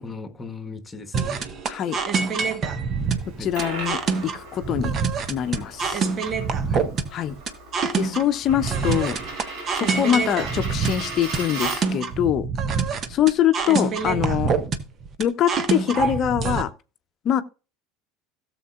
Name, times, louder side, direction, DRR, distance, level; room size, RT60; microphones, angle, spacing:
voice 1, 0.0-1.4 3.4-3.5 6.7-6.9, left 3 dB, 20° left, 1.5 m, -37 dB
sound 1, 1.1-16.6, right 5 dB, 40° right, 1.2 m, -26 dB
Coin (dropping), 3.2-12.1, right 2 dB, 60° right, 3.2 m, -37 dB
voice 2, 3.4-4.9 5.3-6.1 7.1-7.3 7.9-9.2 9.7-12.5 13.1-14.5 15.2-16.7 17.2-17.4, left 10 dB, 45° left, 0.8 m, -23 dB
17.0 x 7.1 x 2.5 m
figure-of-eight pair, 70°, 0 cm